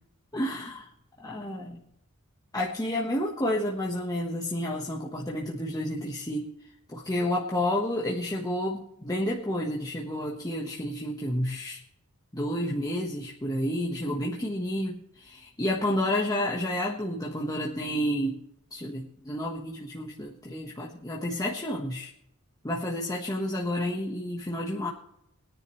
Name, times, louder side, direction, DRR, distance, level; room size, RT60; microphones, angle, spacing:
voice 1, 0.3-0.9 1.2-1.8 2.5-6.5 6.9-11.8 12.3-18.4 18.7-22.1 22.6-24.9, left 1 dB, 15° left, -2 dB, 1.3 m, -30 dB
21.0 x 10.0 x 3.2 m, 0.75 s
head